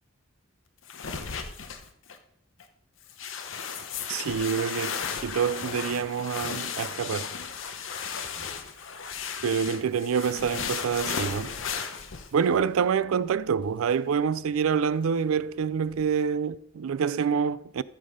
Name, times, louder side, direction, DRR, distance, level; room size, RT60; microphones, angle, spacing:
sound 1, 0.9-2.2 2.6-2.7 3.1-12.3, left 6 dB, 65° left, 0.9 m, -35 dB
voice 1, 4.1-7.3 9.4-11.5 12.3-17.8, right 6 dB, 85° right, 0.4 m, -27 dB
sound 2, 5.0-16.4, right 1 dB, 25° right, 1.6 m, -57 dB
14.0 x 5.3 x 5.1 m
head